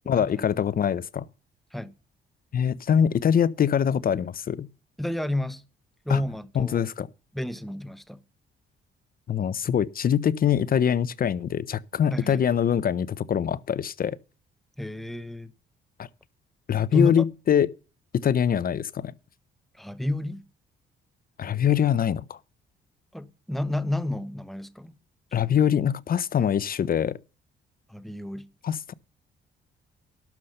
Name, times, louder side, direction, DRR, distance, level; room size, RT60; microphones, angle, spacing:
voice 1, 0.1-1.2 2.5-4.7 6.1-6.2 6.5-7.1 9.3-14.2 16.0-16.1 16.7-17.7 18.1-19.1 21.4-22.4 25.3-27.2 28.6-28.9, left 8 dB, 45° left, 0.6 m, -23 dB
voice 2, 5.0-5.6 6.0-6.8 7.3-8.2 12.1-12.4 14.8-15.5 16.9-17.2 19.8-20.4 23.1-24.9 27.9-28.5, left 1 dB, ahead, 1.1 m, -30 dB
12.0 x 5.7 x 6.5 m
cardioid pair, 90°, 20 cm